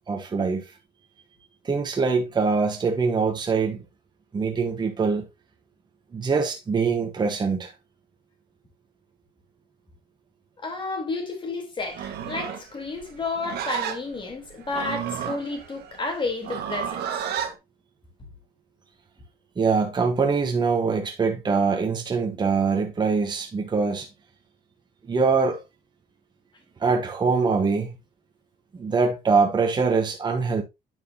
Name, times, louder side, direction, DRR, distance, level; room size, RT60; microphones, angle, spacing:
voice 1, 0.1-0.7 1.6-3.8 4.3-5.3 6.1-7.7 19.6-24.1 25.1-25.6 26.8-28.0 28.7-30.6, right 4 dB, 25° right, 1.1 m, -23 dB
voice 2, 10.6-17.0, left 3 dB, 30° left, 3.5 m, -31 dB
Livestock farm animals working animals, 11.9-17.5, right 8 dB, 70° right, 1.5 m, -32 dB
9.2 x 5.8 x 2.7 m
cardioid pair, 110°, 17 cm